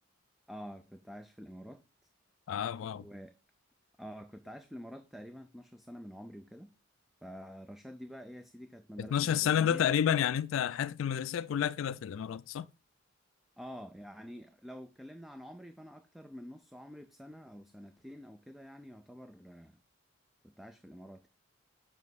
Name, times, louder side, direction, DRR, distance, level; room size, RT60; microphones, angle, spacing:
voice 1, 0.5-1.8 2.9-3.3 4.0-6.7 7.2-9.9 13.6-19.8 20.4-21.3, equal, ahead, 0.4 m, -48 dB
voice 2, 2.5-3.0 9.0-12.7, left 9 dB, 90° left, 0.3 m, -30 dB
7.3 x 5.2 x 4.0 m
head